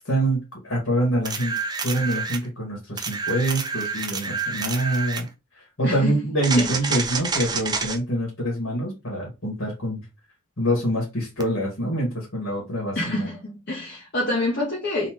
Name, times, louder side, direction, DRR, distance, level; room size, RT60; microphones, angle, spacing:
voice 1, 0.1-1.5 1.8-5.3 5.8-10.0 10.6-13.3, right 1 dB, 85° left, 2.2 m, -25 dB
sound 1, 1.3-2.5 3.0-5.3 6.4-8.0 11.4-11.5, right 5 dB, 20° right, 0.5 m, -28 dB
voice 2, 5.8-6.2 6.6-7.1 12.9-15.1, left 2 dB, 50° left, 1.2 m, -27 dB
3.7 x 3.2 x 3.7 m
head